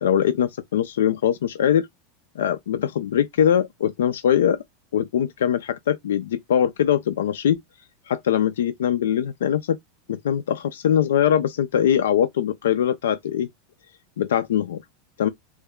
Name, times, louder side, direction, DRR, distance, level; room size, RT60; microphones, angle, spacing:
voice 1, 0.0-1.9 2.4-4.6 4.9-7.6 8.1-9.8 10.1-13.5 14.2-14.8 15.2-15.3, left 9 dB, 80° left, 0.3 m, -22 dB
3.0 x 2.2 x 3.5 m
hypercardioid pair, 95°, 0 cm